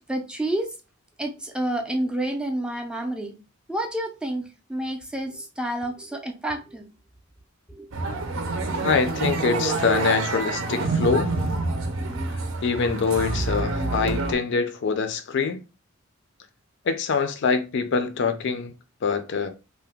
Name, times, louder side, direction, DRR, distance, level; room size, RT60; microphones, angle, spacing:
voice 1, 0.1-0.7 1.2-3.3 3.7-6.9 7.7-7.9, right 1 dB, 5° right, 0.4 m, -29 dB
sound 1, 7.9-14.3, right 3 dB, 70° right, 0.6 m, -27 dB
voice 2, 8.8-11.3 12.6-15.6 16.9-18.7 19.0-19.5, left 5 dB, 55° left, 0.4 m, -24 dB
2.8 x 2.1 x 3.4 m
head